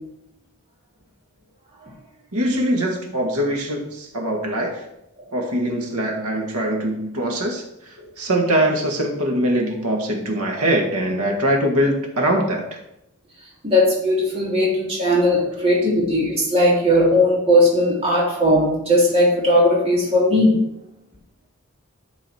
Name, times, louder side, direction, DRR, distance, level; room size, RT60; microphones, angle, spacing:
voice 1, 2.3-4.8 5.3-7.6 8.2-12.8, right 1 dB, 85° right, 1 dB, 1.7 m, -22 dB
voice 2, 13.6-20.6, left 1 dB, 25° right, -5 dB, 2.4 m, -18 dB
11.5 x 4.0 x 4.3 m, 0.84 s
head